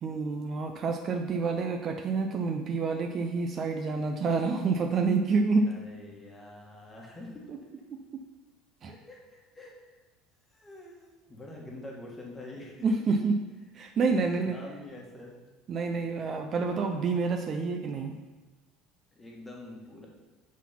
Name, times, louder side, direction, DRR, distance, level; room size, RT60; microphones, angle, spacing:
voice 1, 0.0-5.7 7.9-8.2 8.8-8.9 12.8-13.4 13.7-14.6 15.7-18.2, right 4 dB, 35° right, 5 dB, 0.5 m, -28 dB
voice 2, 5.7-7.5 8.9-9.7 10.5-12.8 13.9-14.1 14.4-15.4 19.1-20.1, left 2 dB, 15° left, -2 dB, 1.4 m, -45 dB
6.1 x 4.1 x 5.7 m, 1.3 s
cardioid pair, 145°, 0 cm